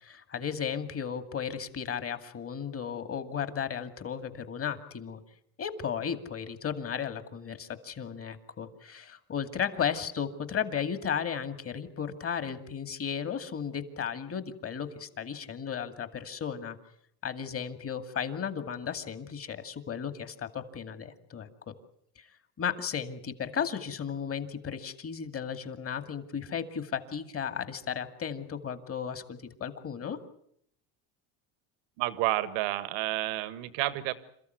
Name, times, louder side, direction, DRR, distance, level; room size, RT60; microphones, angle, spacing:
voice 1, 0.0-5.2 5.6-16.8 17.2-21.5 22.2-22.3 22.6-30.2, left 7 dB, 30° left, 10 dB, 2.3 m, -35 dB
voice 2, 32.0-34.1, right 16 dB, 80° right, 14 dB, 1.8 m, -30 dB
28.0 x 14.5 x 9.4 m, 0.70 s
supercardioid pair, 120°, 43 cm